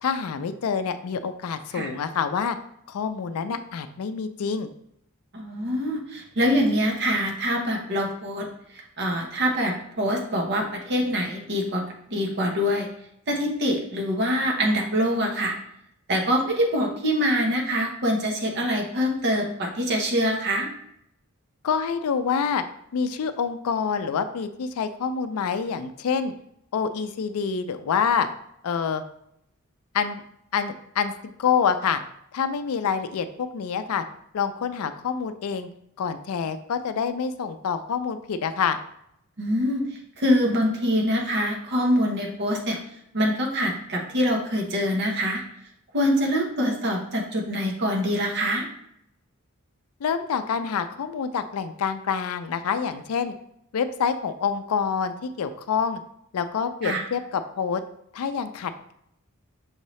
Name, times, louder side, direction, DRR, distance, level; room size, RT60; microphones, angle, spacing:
voice 1, 0.0-2.6 2.9-4.7 21.6-22.6 22.9-26.3 26.7-28.3 28.6-29.0 29.9-30.2 30.5-32.0 32.3-34.0 34.3-35.7 36.0-38.8 50.0-53.3 53.7-56.0 56.3-57.8 58.1-58.9, left 6 dB, 75° left, 10 dB, 0.4 m, -27 dB
voice 2, 5.3-8.5 9.0-11.8 12.1-12.9 13.3-15.5 16.1-20.7 39.4-39.8 40.2-42.8 43.1-45.4 45.9-48.7 56.8-57.0, equal, 50° right, 1 dB, 0.9 m, -24 dB
6.4 x 2.7 x 3.1 m, 0.75 s
head